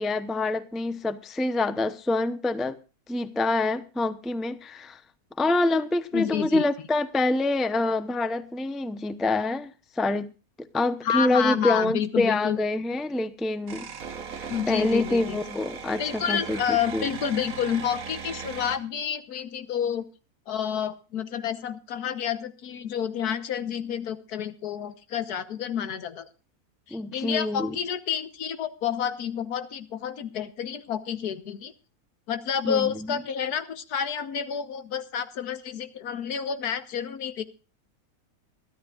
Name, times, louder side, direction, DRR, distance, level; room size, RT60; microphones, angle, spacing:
voice 1, 0.0-2.8 3.1-5.0 5.4-9.7 10.0-10.3 10.7-13.9 14.3-17.1 26.9-27.8 32.6-33.2, left 2 dB, ahead, 0.4 m, -26 dB
voice 2, 6.1-6.9 11.0-12.6 14.5-15.4 16.0-20.0 20.5-26.3 26.9-31.7 32.3-37.4, left 8 dB, 85° left, 1.6 m, -29 dB
sound 1, 13.7-18.8, right 6 dB, 65° right, 1.7 m, -38 dB
23.0 x 12.5 x 2.4 m
omnidirectional pair, 1.6 m